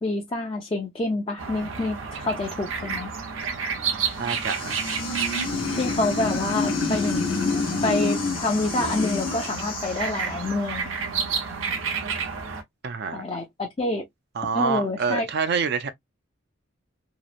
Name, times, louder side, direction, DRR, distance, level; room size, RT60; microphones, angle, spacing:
voice 1, 0.0-3.1 5.8-10.9 13.1-14.0 14.5-15.3, left 2 dB, 30° left, 0.4 m, -27 dB
sound 1, 1.4-12.6, right 6 dB, 90° right, 0.7 m, -31 dB
sound 2, 3.9-10.6, left 7 dB, 50° left, 1.0 m, -38 dB
voice 2, 4.2-4.8 12.8-13.2 14.3-15.9, right 5 dB, 60° right, 0.5 m, -27 dB
sound 3, 4.6-9.5, left 3 dB, 75° left, 0.6 m, -28 dB
2.9 x 2.0 x 2.3 m
head